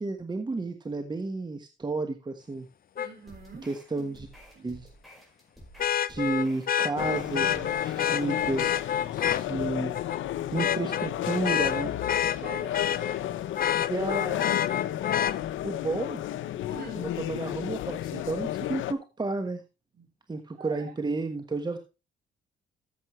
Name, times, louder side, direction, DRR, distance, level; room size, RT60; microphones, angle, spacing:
voice 1, 0.0-2.7 3.6-4.3 4.6-4.9 6.1-8.7 9.3-9.9 10.5-11.9 13.9-14.6 15.6-16.2 17.0-19.6 20.3-21.8, right 3 dB, 20° right, 7 dB, 1.3 m, -32 dB
Vehicle horn car horn honking, 3.0-3.1 5.8-9.4 9.9-10.2 10.6-13.2 13.6-15.3 17.2-17.3, left 9 dB, 45° left, 0.7 m, -28 dB
voice 2, 3.0-3.7 4.5-4.8 12.4-12.9 16.7-17.1 19.9-20.0 20.6-20.9, right 5 dB, 55° right, 6 dB, 4.2 m, -44 dB
sound 1, 3.3-8.9, equal, ahead, 5.0 m, -51 dB
sound 2, 7.0-18.9, left 12 dB, 75° left, 0.8 m, -32 dB
14.0 x 7.7 x 3.1 m, 0.29 s
cardioid pair, 90°, 20 cm